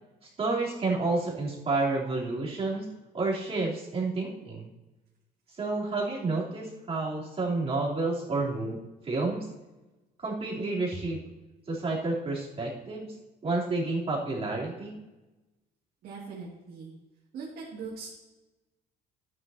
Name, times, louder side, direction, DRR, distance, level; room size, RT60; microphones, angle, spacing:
voice 1, 0.4-2.9 3.1-4.7 5.6-8.8 9.0-9.5 10.2-11.2 11.7-13.1 13.4-15.0, right 3 dB, 35° right, -5 dB, 3.6 m, -30 dB
voice 2, 16.0-16.9 17.3-18.1, right 5 dB, 70° right, -6 dB, 2.7 m, -40 dB
12.5 x 9.6 x 2.9 m, 1.1 s
cardioid pair, 110°, 17 cm